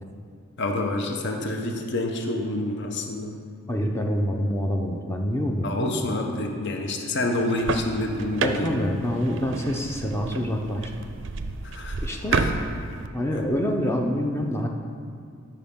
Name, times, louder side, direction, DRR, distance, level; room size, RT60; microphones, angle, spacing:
voice 1, 0.6-3.4 5.6-8.9 11.6-12.6 13.3-13.5, left 2 dB, 55° left, 3 dB, 0.8 m, -28 dB
voice 2, 3.7-6.0 8.4-10.9 12.0-12.4 13.1-14.7, equal, 10° left, 1 dB, 0.6 m, -26 dB
sound 1, 7.4-13.1, right 4 dB, 55° right, 0.5 m, -30 dB
13.0 x 5.7 x 3.7 m, 2.3 s
head